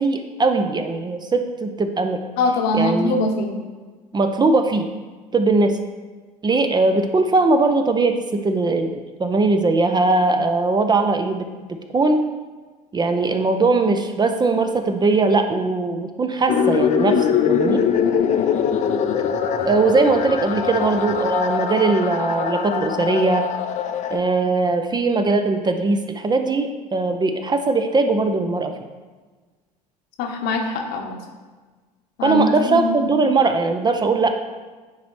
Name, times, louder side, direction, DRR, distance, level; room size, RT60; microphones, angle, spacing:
voice 1, 0.0-2.2 2.7-3.2 4.1-4.9 5.3-5.8 6.4-8.9 9.2-11.5 11.9-12.2 12.9-17.8 19.7-23.5 24.1-28.7 32.2-34.3, right 3 dB, 20° right, 6 dB, 0.5 m, -20 dB
voice 2, 2.4-3.5 30.2-31.2 32.2-33.1, left 1 dB, 55° left, 3 dB, 1.0 m, -22 dB
sound 1, 16.5-24.2, left 7 dB, 40° left, 0.6 m, -22 dB
9.3 x 4.0 x 3.2 m, 1.3 s
figure-of-eight pair, 65°, 20 cm